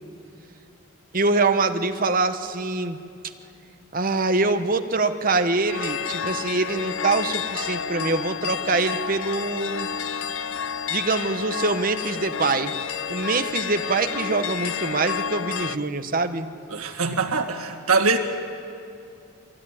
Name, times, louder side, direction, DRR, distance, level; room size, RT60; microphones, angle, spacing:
voice 1, 1.1-3.0 3.9-9.9 10.9-12.7 13.1-16.5, right 3 dB, 40° right, 8 dB, 0.9 m, -24 dB
sound 1, 5.7-15.8, left 7 dB, 60° left, 0.5 m, -30 dB
voice 2, 16.7-18.2, right 4 dB, 85° right, 3 dB, 1.9 m, -23 dB
24.0 x 15.5 x 9.8 m, 2.6 s
head